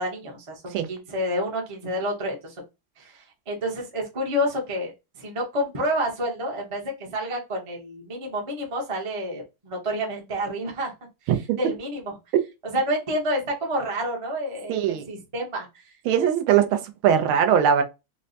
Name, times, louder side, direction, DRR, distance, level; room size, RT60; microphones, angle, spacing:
voice 1, 0.0-2.6 3.0-10.9 11.2-12.2 12.6-15.9, equal, 45° right, 0.4 m, -29 dB
voice 2, 14.7-15.0 16.1-17.8, right 9 dB, 90° right, 1.5 m, -21 dB
4.4 x 2.0 x 2.6 m
omnidirectional pair, 2.2 m